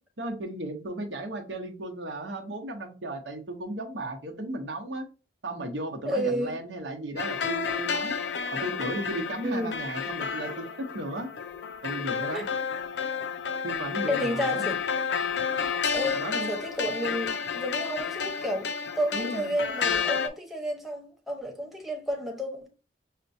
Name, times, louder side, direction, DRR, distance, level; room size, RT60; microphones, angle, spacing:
voice 1, 0.2-5.1 5.4-8.2 8.5-11.3 11.8-12.5 13.6-14.6 16.1-16.5 19.1-19.5, right 1 dB, 90° right, 0.9 m, -35 dB
voice 2, 6.1-6.5 9.4-9.8 12.3-12.4 14.1-14.8 15.9-18.7 19.0-22.7, equal, ahead, 0.8 m, -31 dB
sound 1, 7.2-20.3, left 6 dB, 70° left, 0.5 m, -31 dB
6.5 x 2.2 x 2.6 m
head